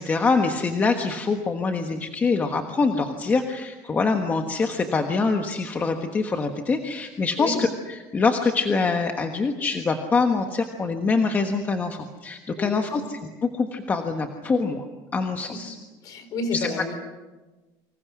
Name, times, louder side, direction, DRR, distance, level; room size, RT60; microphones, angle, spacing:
voice 1, 0.0-7.7 8.1-14.9 15.1-15.7 16.5-16.7, left 4 dB, 20° left, 4 dB, 1.4 m, -24 dB
voice 2, 12.5-13.1 15.5-15.6 16.0-16.9, left 3 dB, 40° left, 9 dB, 4.6 m, -30 dB
29.5 x 25.5 x 6.2 m, 1.2 s
cardioid pair, 170°, 10 cm